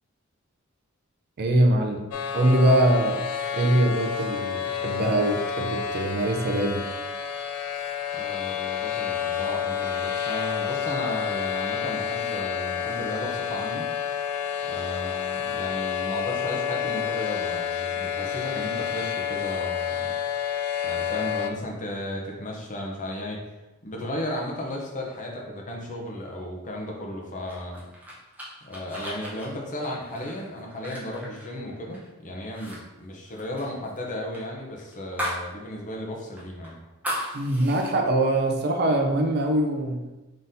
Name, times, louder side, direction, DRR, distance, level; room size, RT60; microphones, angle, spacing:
voice 1, 1.4-2.0 2.3-6.8 37.3-40.1, right 1 dB, 50° right, 3 dB, 0.5 m, -23 dB
sound 1, 2.1-21.5, left 8 dB, 90° left, 0.4 m, -29 dB
voice 2, 8.2-13.8 14.6-20.1 20.8-23.4 23.8-27.8 28.6-36.8, left 1 dB, 35° left, -1 dB, 0.7 m, -34 dB
sound 2, 27.5-32.1 32.4-32.8 33.0-35.5 35.8-35.9 36.4-37.9, equal, 5° right, 0.8 m, -36 dB
3.9 x 3.7 x 2.7 m, 1.1 s
head